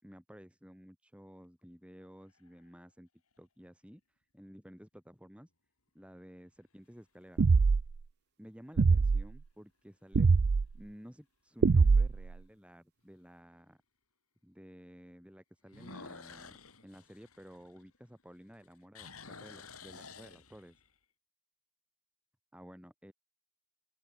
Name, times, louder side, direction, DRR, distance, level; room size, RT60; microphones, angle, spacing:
voice 1, 0.0-3.1 3.4-4.0 4.3-5.5 5.9-7.5 8.4-10.3 10.7-13.8 14.4-20.8 22.5-23.1, equal, 5° right, 6.7 m, -53 dB
sound 1, 2.0-2.7 3.4-3.5 8.7-9.2 9.6-9.7 10.3-10.4 10.6-10.7 12.2-12.3 15.7-18.2 18.5-20.9, left 4 dB, 75° left, 7.2 m, -51 dB
sound 2, 7.4-8.0 8.8-9.2 10.1-10.7 11.6-12.3, right 4 dB, 45° right, 0.4 m, -23 dB
open air
head